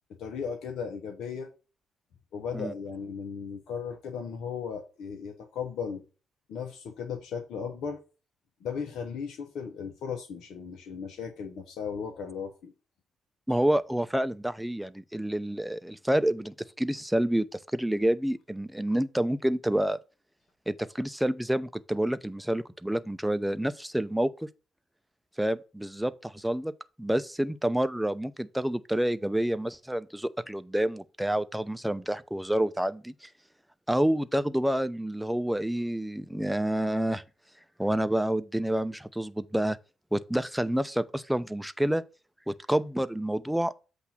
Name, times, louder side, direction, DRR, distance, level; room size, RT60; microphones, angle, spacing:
voice 1, 0.2-1.5 2.3-6.0 6.5-8.0 8.6-12.7 13.5-13.6, left 6 dB, 75° left, 1.1 m, -36 dB
voice 2, 13.5-20.0 20.7-24.5 25.4-26.7 27.0-33.3 33.9-37.2 37.8-39.8 40.1-42.0 42.5-43.7, right 1 dB, 5° right, 0.7 m, -28 dB
8.1 x 2.7 x 5.9 m
supercardioid pair, 55°, 0 cm